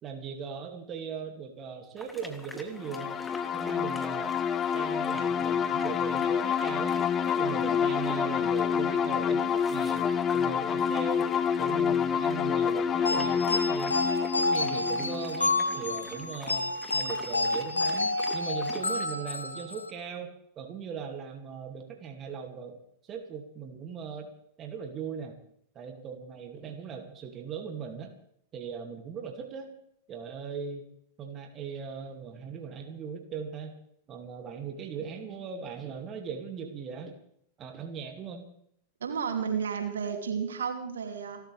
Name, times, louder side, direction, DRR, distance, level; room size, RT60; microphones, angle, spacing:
voice 1, 0.0-3.2 3.5-4.4 4.7-14.0 14.4-24.3 24.6-25.3 25.7-28.1 28.5-29.8 30.1-30.9 31.2-33.7 34.1-37.2 37.6-38.5, right 6 dB, 30° right, 3 dB, 2.5 m, -39 dB
sound 1, 2.0-19.1, left 1 dB, 5° left, 2.9 m, -47 dB
sound 2, 2.8-16.3, left 7 dB, 25° left, 0.8 m, -28 dB
sound 3, 13.0-19.9, left 2 dB, 80° left, 1.8 m, -29 dB
voice 2, 39.0-41.4, right 6 dB, 65° right, 4 dB, 2.9 m, -32 dB
29.0 x 13.0 x 3.5 m, 0.69 s
figure-of-eight pair, 90°, 0 cm